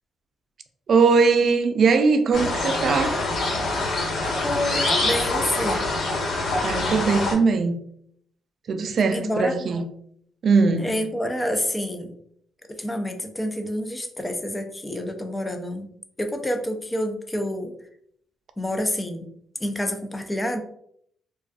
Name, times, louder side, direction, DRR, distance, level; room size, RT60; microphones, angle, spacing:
voice 1, 0.9-3.2 6.6-7.8 8.7-9.8 10.4-10.9, right 4 dB, 55° right, 0.3 m, -20 dB
sound 1, 2.3-7.3, left 2 dB, 60° left, 1.2 m, -25 dB
voice 2, 4.4-5.8 9.1-9.7 10.8-12.1 12.7-15.9 16.2-17.7 18.6-19.3 19.6-20.6, left 1 dB, 15° left, 0.4 m, -28 dB
2.4 x 2.3 x 2.3 m
cardioid pair, 90°, 0 cm